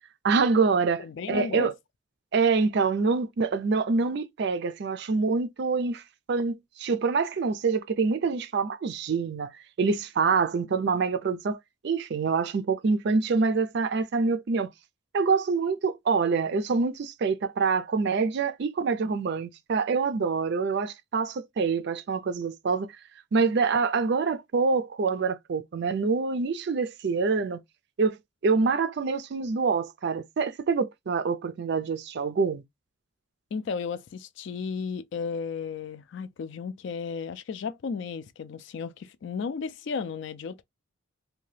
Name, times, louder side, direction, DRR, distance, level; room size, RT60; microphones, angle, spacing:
voice 1, 0.2-1.7 2.3-6.0 6.3-9.5 9.8-11.6 11.8-14.7 15.1-22.9 23.3-27.6 28.0-28.2 28.4-32.6, right 4 dB, 50° right, 0.3 m, -26 dB
voice 2, 1.0-1.7 33.5-40.6, left 5 dB, 55° left, 0.3 m, -34 dB
2.8 x 2.2 x 3.1 m
head